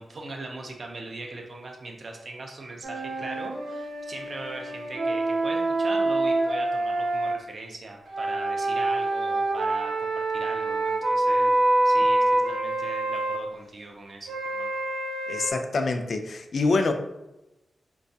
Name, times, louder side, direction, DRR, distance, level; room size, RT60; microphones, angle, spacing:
voice 1, 0.0-11.5 11.8-14.7, right 2 dB, 40° right, 1 dB, 0.4 m, -40 dB
sound 1, 2.8-7.4 8.1-13.4 14.3-15.5, right 2 dB, 85° right, 0.7 m, -26 dB
voice 2, 15.3-16.9, left 3 dB, 50° left, 7 dB, 0.3 m, -25 dB
4.5 x 2.2 x 2.6 m, 0.95 s
wide cardioid pair, 175°, 0 cm